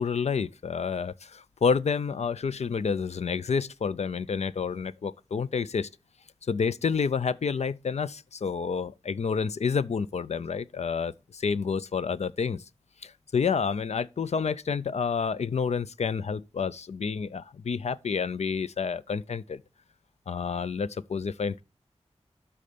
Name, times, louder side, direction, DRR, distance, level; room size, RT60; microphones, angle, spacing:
voice 1, 0.0-5.9 6.5-12.6 13.0-19.6 20.3-21.6, left 5 dB, 75° left, 0.5 m, -29 dB
12.0 x 4.2 x 5.1 m
wide cardioid pair, 70°, 11 cm